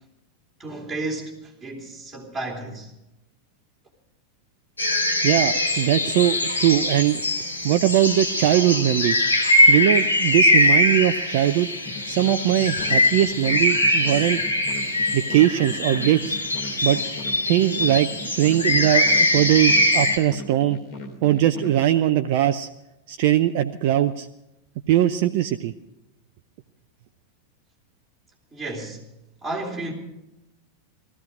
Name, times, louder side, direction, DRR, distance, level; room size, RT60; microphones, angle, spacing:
voice 1, 0.6-2.9 28.5-29.0 29.4-29.9, right 2 dB, 5° right, -4 dB, 3.5 m, -32 dB
sound 1, 4.8-20.2, left 1 dB, 80° left, 2.5 m, -22 dB
voice 2, 5.2-7.2 7.6-9.2 9.7-11.7 12.1-14.4 15.1-16.4 16.8-17.0 17.5-18.1 18.4-20.8 21.2-22.7 23.1-24.3 24.9-25.7, right 12 dB, 50° right, 8 dB, 0.5 m, -20 dB
sound 2, 11.8-21.8, left 1 dB, 35° left, 2.6 m, -38 dB
18.5 x 13.5 x 5.0 m, 0.91 s
figure-of-eight pair, 90°, 0 cm